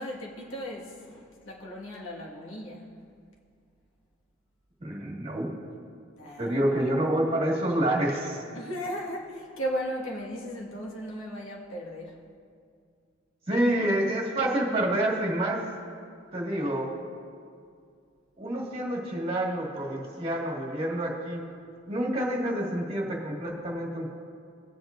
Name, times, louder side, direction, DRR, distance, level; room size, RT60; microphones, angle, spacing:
voice 1, 0.0-2.9 6.2-6.7 8.5-12.2, equal, 75° left, -3 dB, 1.7 m, -36 dB
voice 2, 4.8-5.5 6.4-8.4 13.5-15.6 16.3-16.9 18.4-21.4 21.9-24.1, right 1 dB, 30° right, -3 dB, 1.9 m, -28 dB
19.5 x 7.8 x 2.6 m, 2.2 s
head